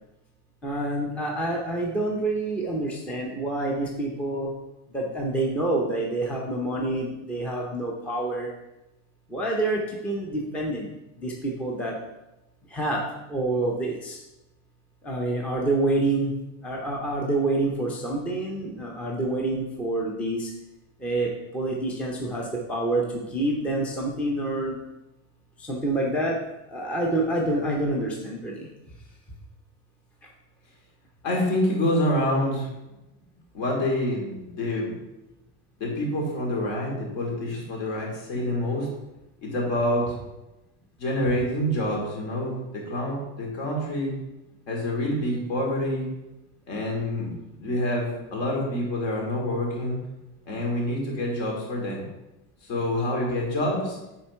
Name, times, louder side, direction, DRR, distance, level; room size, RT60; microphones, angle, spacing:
voice 1, 0.6-4.5 4.9-8.5 9.3-10.9 11.2-12.0 12.7-14.2 15.0-16.3 16.6-20.5 21.0-24.8 25.6-26.4 26.7-28.7, right 2 dB, 5° left, -1 dB, 0.5 m, -27 dB
voice 2, 31.2-32.7 33.5-34.9 35.8-38.9 39.4-40.2 41.0-44.1 44.7-46.1 46.7-47.3 47.6-50.0 50.5-52.0 52.7-54.0, left 1 dB, 60° left, -1 dB, 2.9 m, -27 dB
7.5 x 4.4 x 5.6 m, 0.97 s
cardioid pair, 175°, 36 cm